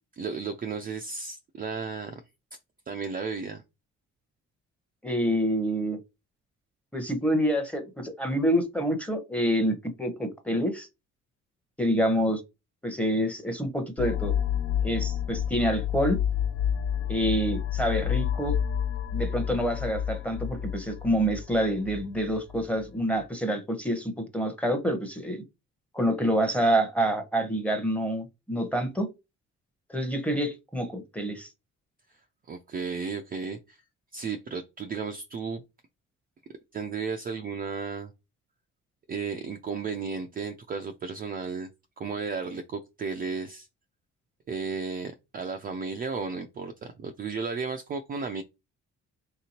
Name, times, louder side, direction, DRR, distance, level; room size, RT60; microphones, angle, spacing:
voice 1, 0.2-2.2 2.9-3.6 32.5-33.8 34.1-35.6 36.7-38.1 39.1-41.7 42.0-43.7 44.5-48.4, right 5 dB, 30° right, 0.4 m, -34 dB
voice 2, 5.0-6.0 6.9-10.9 11.8-12.4 12.8-14.4 14.8-16.2 17.1-18.6 19.1-25.4 25.9-29.1 29.9-31.5, equal, 5° left, 0.8 m, -27 dB
sound 1, 14.0-22.6, left 9 dB, 50° left, 0.4 m, -29 dB
3.2 x 2.8 x 2.9 m
cardioid pair, 90°, 30 cm